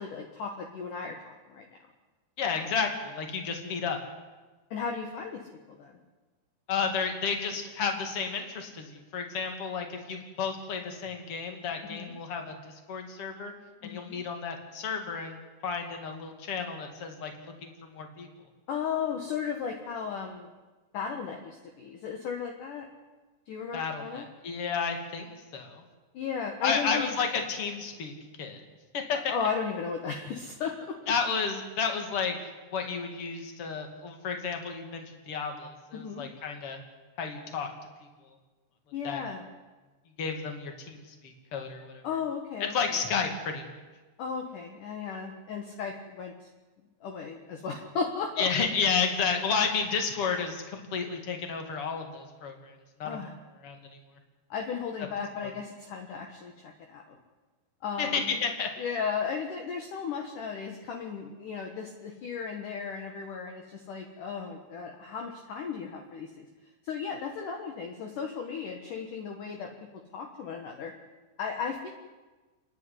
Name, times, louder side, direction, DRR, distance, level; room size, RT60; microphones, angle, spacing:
voice 1, 0.0-1.6 4.7-5.4 5.7-6.0 11.8-12.1 13.8-14.2 18.7-20.5 20.9-22.9 23.5-24.2 26.1-27.1 29.1-31.0 35.9-36.2 38.9-39.4 42.0-42.7 44.2-46.3 47.0-48.5 53.0-53.3 54.5-57.2 57.8-58.3 58.8-66.5 66.8-69.7 70.1-70.9 71.4-71.9, left 6 dB, 60° left, 3 dB, 2.6 m, -35 dB
voice 2, 2.4-4.0 6.7-13.5 13.8-18.3 23.7-25.8 26.6-28.1 28.4-28.6 28.9-29.3 31.1-32.4 32.7-36.8 37.2-37.7 39.0-39.2 40.2-42.0 42.6-43.8 48.4-52.7 53.0-53.2 53.6-53.8 55.4-55.5 58.0-58.7, left 5 dB, 40° left, 4 dB, 2.8 m, -32 dB
30.0 x 10.5 x 9.8 m, 1.3 s
omnidirectional pair, 4.9 m